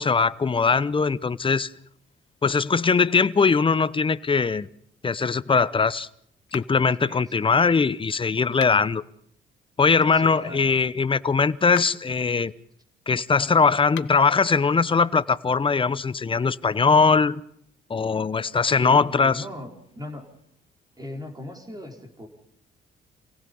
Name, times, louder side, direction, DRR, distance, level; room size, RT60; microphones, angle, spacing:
voice 1, 0.0-1.7 2.4-4.7 5.0-6.1 6.5-9.0 9.8-12.5 13.1-17.4 17.9-19.4, left 5 dB, 25° left, 0.8 m, -21 dB
sound 1, 6.5-7.0 8.5-9.0 11.6-12.1 13.8-14.3, left 13 dB, 75° left, 0.8 m, -40 dB
voice 2, 7.0-7.6 10.1-10.6 18.8-20.2 21.0-22.3, left 1 dB, 20° right, 4.8 m, -38 dB
28.0 x 17.5 x 5.5 m
cardioid pair, 90°, 20 cm